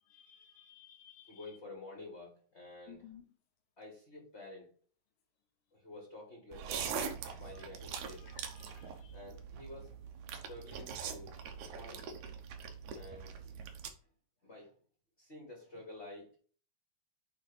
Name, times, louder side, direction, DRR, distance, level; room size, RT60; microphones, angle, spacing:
voice 1, 0.0-1.5 2.9-3.2 7.6-7.7 8.2-9.2, left 10 dB, 80° left, 2.7 m, -57 dB
voice 2, 1.3-3.1 3.8-4.7 5.7-8.3 9.1-10.0 10.3-11.3 11.6-12.1 12.9-13.6 14.4-14.7 15.2-16.4, left 2 dB, 25° left, 1.5 m, -50 dB
sound 1, 6.5-13.9, right 7 dB, 70° right, 2.1 m, -43 dB
9.2 x 3.2 x 5.4 m
omnidirectional pair, 4.0 m